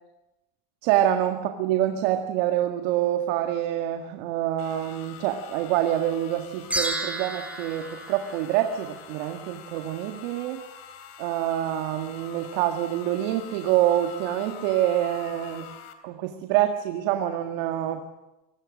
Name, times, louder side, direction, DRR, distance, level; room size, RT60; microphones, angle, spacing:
voice 1, 0.8-10.6 11.2-15.7 16.0-18.0, right 12 dB, 75° right, 5 dB, 1.9 m, -26 dB
sound 1, 4.6-15.9, left 8 dB, 70° left, 3.8 m, -45 dB
sound 2, 6.7-9.2, right 1 dB, 5° right, 4.4 m, -32 dB
25.5 x 20.0 x 6.4 m, 1.0 s
supercardioid pair, 125°, 29 cm